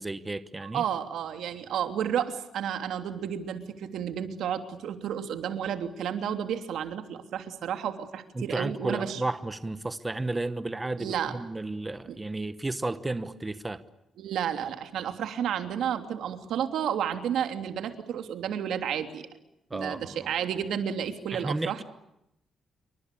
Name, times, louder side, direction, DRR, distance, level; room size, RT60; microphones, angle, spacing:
voice 1, 0.0-0.8 8.3-13.8 19.7-20.2 21.3-21.8, right 2 dB, 15° right, 12 dB, 1.1 m, -33 dB
voice 2, 0.6-9.2 11.0-11.4 12.1-12.2 14.2-19.3 19.7-21.8, right 9 dB, 90° right, 7 dB, 3.1 m, -31 dB
28.5 x 24.5 x 8.5 m, 0.84 s
wide cardioid pair, 165°, 0 cm